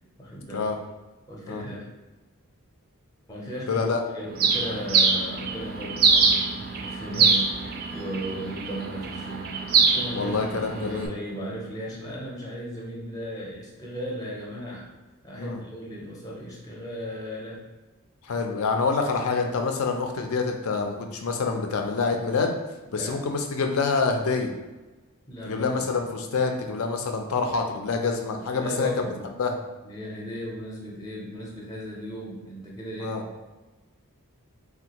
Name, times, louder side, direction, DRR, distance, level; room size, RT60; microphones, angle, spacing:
voice 1, 0.2-0.7 1.3-1.9 3.3-7.5 7.9-10.4 10.7-14.9 15.2-17.6 22.9-23.2 25.3-25.7 28.5-29.3 29.8-33.2, equal, 15° left, -3 dB, 0.6 m, -36 dB
voice 2, 3.7-4.0 7.1-7.3 10.1-11.1 15.4-15.6 18.2-22.5 22.9-24.5 25.4-28.9 29.4-29.6 33.0-33.2, left 4 dB, 70° left, 4 dB, 0.4 m, -26 dB
Bird, 4.4-11.1, right 4 dB, 45° right, 0.3 m, -24 dB
3.3 x 2.2 x 2.9 m, 1.1 s
head